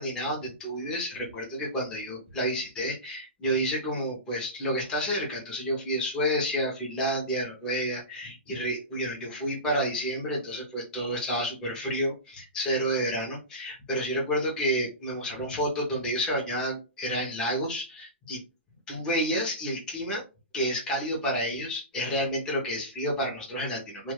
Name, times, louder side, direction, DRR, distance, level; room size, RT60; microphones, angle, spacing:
voice 1, 0.0-18.4 18.9-20.2 20.5-24.1, equal, 10° left, -3 dB, 0.6 m, -30 dB
2.2 x 2.1 x 3.1 m, 0.29 s
hypercardioid pair, 165°, 7 cm